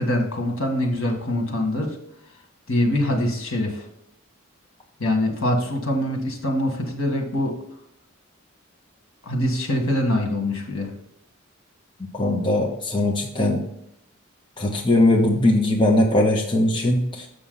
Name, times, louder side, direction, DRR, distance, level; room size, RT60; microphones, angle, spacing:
voice 1, 0.0-2.0 2.7-3.9 5.0-7.5 9.2-10.9, left 1 dB, 70° left, 2 dB, 1.8 m, -24 dB
voice 2, 12.0-13.6 14.6-17.3, left 1 dB, 25° left, 0 dB, 0.8 m, -20 dB
7.1 x 6.2 x 4.0 m, 0.76 s
head